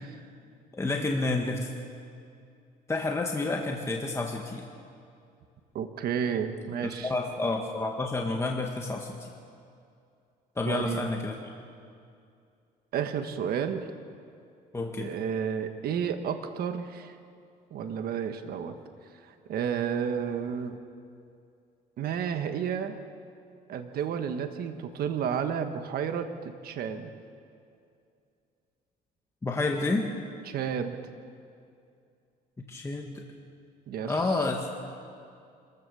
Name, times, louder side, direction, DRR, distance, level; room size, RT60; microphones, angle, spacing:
voice 1, 0.7-1.7 2.9-4.6 6.8-9.3 10.6-11.4 14.7-15.1 29.4-30.1 32.7-33.2 34.1-34.7, left 2 dB, 15° left, 1 dB, 1.7 m, -29 dB
voice 2, 5.7-7.1 10.7-11.1 12.9-13.8 15.0-17.2 17.7-18.8 19.3-20.8 22.0-23.0 23.7-27.1 30.4-31.0 33.9-34.5, right 7 dB, 65° right, 7 dB, 1.5 m, -31 dB
26.0 x 15.0 x 7.0 m, 2.5 s
cardioid pair, 110°, 17 cm